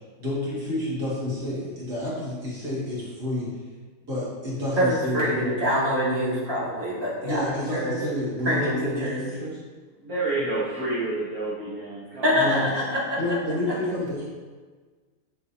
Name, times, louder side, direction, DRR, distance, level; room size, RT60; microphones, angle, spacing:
voice 1, 0.0-3.5 4.1-5.6 7.2-9.6 12.3-12.6 13.2-14.3, left 1 dB, 85° right, -8 dB, 3.0 m, -29 dB
voice 2, 4.8-7.4 7.7-8.0 8.4-9.2 12.2-13.2, equal, 20° right, -9 dB, 2.8 m, -25 dB
voice 3, 10.0-12.5, right 2 dB, 65° right, -9 dB, 2.0 m, -29 dB
10.0 x 6.5 x 2.9 m, 1.4 s
omnidirectional pair, 1.7 m